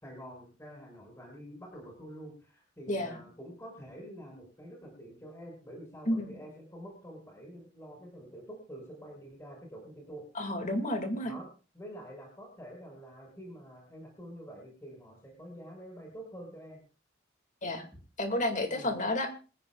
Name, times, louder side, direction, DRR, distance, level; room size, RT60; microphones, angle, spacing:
voice 1, 0.0-10.2 11.2-11.5 11.7-16.8 18.7-18.9, equal, 20° left, -2 dB, 5.7 m, -47 dB
voice 2, 2.9-3.2 6.1-6.4 10.3-11.3 17.6-17.9 18.2-19.3, left 1 dB, 40° left, 5 dB, 2.2 m, -31 dB
27.0 x 9.8 x 2.4 m, 0.35 s
head